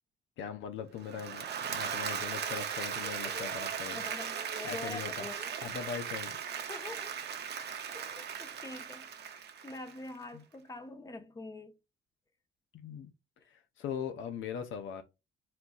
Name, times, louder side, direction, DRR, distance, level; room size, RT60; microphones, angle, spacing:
voice 1, 0.4-4.0 4.6-5.3 5.6-6.4 10.3-10.4 12.7-13.1 13.5-15.0, left 7 dB, 80° left, 0.7 m, -40 dB
Applause / Crowd, 1.0-10.2, right 7 dB, 55° right, 0.7 m, -38 dB
voice 2, 3.0-3.5 3.9-5.5 6.6-7.2 7.9-11.7, left 2 dB, 20° left, 0.8 m, -45 dB
4.4 x 3.8 x 2.4 m
cardioid pair, 90°, 20 cm